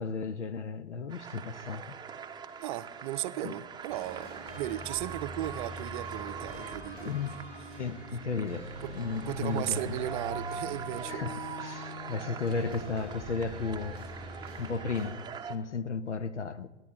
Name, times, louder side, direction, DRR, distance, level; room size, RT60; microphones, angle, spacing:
voice 1, 0.0-1.9 3.4-3.5 7.0-7.3 7.8-10.0 11.1-14.0 14.6-16.7, left 4 dB, 80° left, 0.8 m, -34 dB
sound 1, 1.1-15.6, right 6 dB, 10° right, 0.8 m, -43 dB
voice 2, 2.6-7.1 8.8-8.9 9.3-11.2, right 14 dB, 45° right, 0.7 m, -36 dB
sound 2, 3.9-15.1, left 1 dB, 30° left, 5.1 m, -44 dB
26.0 x 10.5 x 3.9 m
figure-of-eight pair, 90°, 35 cm